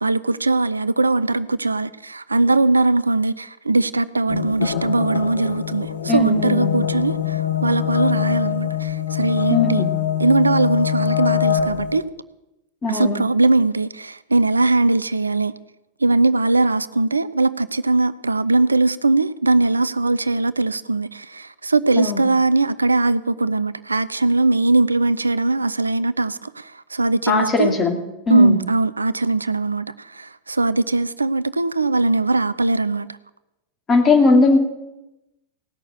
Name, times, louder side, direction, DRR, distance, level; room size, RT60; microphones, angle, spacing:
voice 1, 0.0-9.8 10.2-12.0 12.9-15.5 16.0-27.7 28.3-33.1, right 2 dB, 80° right, 0.4 m, -20 dB
sound 1, 4.3-12.0, left 10 dB, 70° left, 0.8 m, -24 dB
voice 2, 6.1-6.8 9.5-9.9 12.8-13.2 22.0-22.2 27.3-28.0 28.3-28.6 33.9-34.6, left 3 dB, 20° left, 2.4 m, -18 dB
18.0 x 6.6 x 7.9 m
figure-of-eight pair, 90°, 0 cm